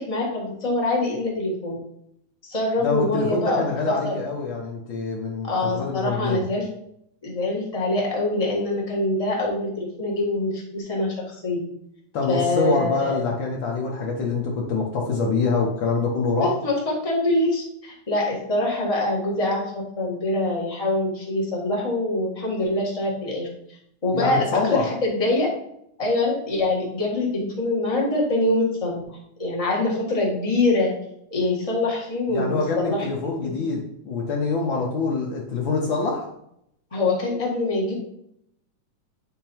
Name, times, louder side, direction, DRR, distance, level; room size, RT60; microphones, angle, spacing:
voice 1, 0.0-1.8 2.4-4.2 5.4-6.7 7.2-11.6 12.3-13.2 16.4-23.5 24.0-25.5 26.0-29.0 29.4-30.9 31.3-33.1 33.4-33.6 36.9-37.9, left 2 dB, 30° left, -4 dB, 0.6 m, -24 dB
voice 2, 2.8-6.4 12.1-16.5 24.1-24.9 32.3-36.3, left 4 dB, 80° left, -2 dB, 1.0 m, -25 dB
9.0 x 3.7 x 4.5 m, 0.75 s
omnidirectional pair, 3.6 m